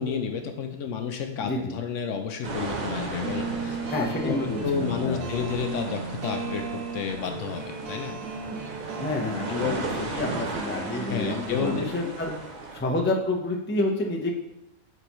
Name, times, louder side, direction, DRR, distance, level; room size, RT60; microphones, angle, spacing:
voice 1, 0.0-4.4 4.6-8.2 9.5-9.8 10.9-12.2, left 6 dB, 70° left, 6 dB, 0.9 m, -31 dB
voice 2, 1.4-1.7 3.9-5.5 9.0-12.4 12.7-14.3, left 2 dB, 15° left, 1 dB, 0.4 m, -29 dB
sound 1, 2.4-12.8, right 3 dB, 40° right, 0.7 m, -36 dB
sound 2, 3.0-11.9, right 4 dB, 75° right, 1.2 m, -36 dB
7.9 x 4.0 x 3.0 m, 0.92 s
omnidirectional pair, 1.5 m